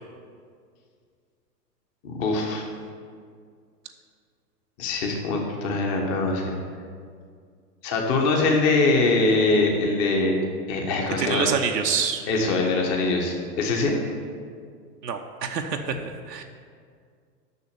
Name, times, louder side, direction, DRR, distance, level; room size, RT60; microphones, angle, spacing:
voice 1, 2.0-2.6 4.8-6.5 7.8-10.4 10.7-11.5 12.3-14.0, left 3 dB, 30° left, 1 dB, 1.3 m, -23 dB
voice 2, 11.2-12.3 15.0-16.4, right 6 dB, 80° right, 3 dB, 0.8 m, -27 dB
6.7 x 6.4 x 7.0 m, 2.1 s
figure-of-eight pair, 110°, 49 cm